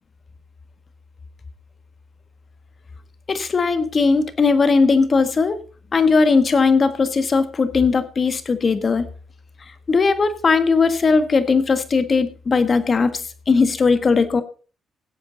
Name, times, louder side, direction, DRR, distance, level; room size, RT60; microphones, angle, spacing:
voice 1, 3.3-5.6 5.9-9.0 9.9-14.4, left 4 dB, 40° left, 11 dB, 1.5 m, -18 dB
18.0 x 8.0 x 4.0 m, 0.38 s
cardioid pair, 90°, 0 cm